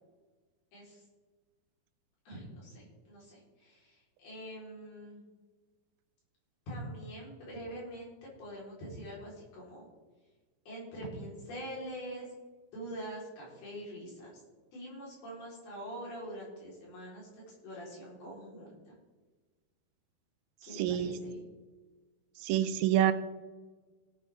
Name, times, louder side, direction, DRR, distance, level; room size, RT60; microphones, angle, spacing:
voice 1, 2.3-5.2 6.7-8.1 8.4-9.9 10.7-12.3 12.7-14.3 14.7-18.8 20.6-21.4, right 1 dB, 75° left, -5 dB, 6.2 m, -44 dB
voice 2, 20.7-21.2 22.4-23.1, right 11 dB, 75° right, 10 dB, 2.3 m, -27 dB
18.0 x 8.5 x 3.6 m, 1.3 s
omnidirectional pair, 4.5 m